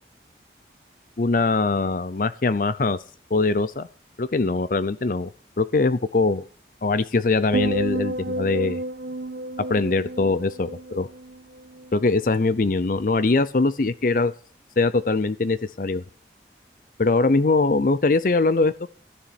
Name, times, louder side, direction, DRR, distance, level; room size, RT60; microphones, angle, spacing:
voice 1, 1.2-3.0 3.3-3.9 4.2-5.3 5.6-6.5 6.8-8.8 9.7-11.1 11.9-14.3 14.8-16.0 17.0-18.9, left 3 dB, 50° left, 14 dB, 0.5 m, -22 dB
sound 1, 7.5-11.9 12.2-12.6, right 1 dB, 65° right, 0.6 m, -31 dB
13.5 x 7.2 x 8.8 m, 0.43 s
head